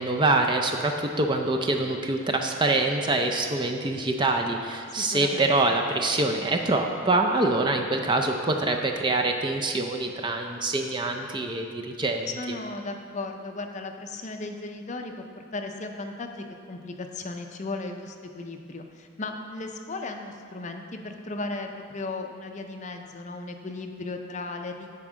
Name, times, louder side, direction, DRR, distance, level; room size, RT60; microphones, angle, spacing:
voice 1, 0.0-12.6, right 2 dB, 20° right, 3 dB, 0.4 m, -25 dB
voice 2, 5.0-5.5 12.3-24.9, left 3 dB, 35° left, 4 dB, 0.5 m, -36 dB
9.6 x 4.5 x 6.2 m, 2.2 s
head